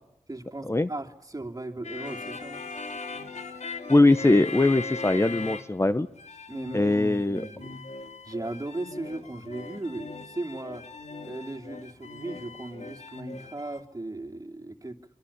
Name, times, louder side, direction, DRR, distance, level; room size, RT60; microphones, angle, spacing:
voice 1, 0.3-2.6 6.5-7.8 8.2-10.8 11.2-15.0, right 2 dB, 30° right, 4 dB, 3.1 m, -37 dB
sound 1, 1.8-5.9 6.1-13.8, left 4 dB, 75° left, 2.9 m, -39 dB
voice 2, 3.9-6.1 6.7-7.4, left 2 dB, 25° left, 12 dB, 1.0 m, -21 dB
26.0 x 24.5 x 8.8 m, 0.78 s
wide cardioid pair, 70°, 12 cm